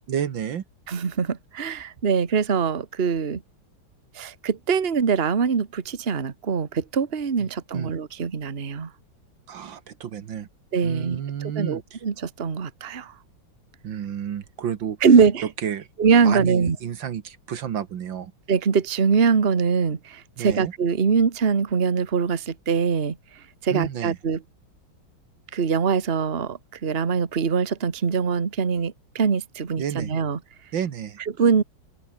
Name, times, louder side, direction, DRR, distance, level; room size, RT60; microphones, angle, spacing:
voice 1, 0.1-0.6 7.7-7.9 9.5-10.5 10.8-11.8 13.8-15.0 15.6-15.9 16.2-18.3 20.4-20.7 23.7-24.2 29.8-30.1 30.7-31.2, right 9 dB, 65° right, 2.0 m, -30 dB
voice 2, 0.9-3.4 4.1-8.9 10.7-13.1 15.0-15.5 16.0-16.8 18.5-23.2 23.6-24.4 25.5-30.4 31.4-31.6, right 6 dB, 30° right, 1.5 m, -23 dB
open air
omnidirectional pair, 2.3 m